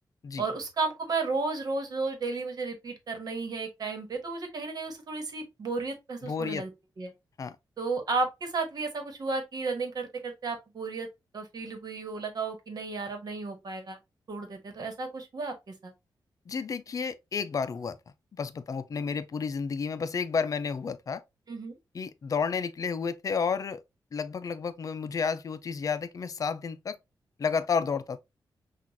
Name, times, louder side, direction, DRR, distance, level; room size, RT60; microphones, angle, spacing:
voice 1, 0.4-6.7 7.0-7.1 7.8-11.1 11.3-14.0 14.3-15.9 21.5-21.8, right 3 dB, 55° right, 1.4 m, -33 dB
voice 2, 6.2-6.6 7.4-7.6 16.5-18.0 18.3-21.2 21.9-23.8 24.1-27.0 27.4-28.2, left 5 dB, 45° left, 0.5 m, -31 dB
6.0 x 2.5 x 2.8 m
wide cardioid pair, 140°, 8 cm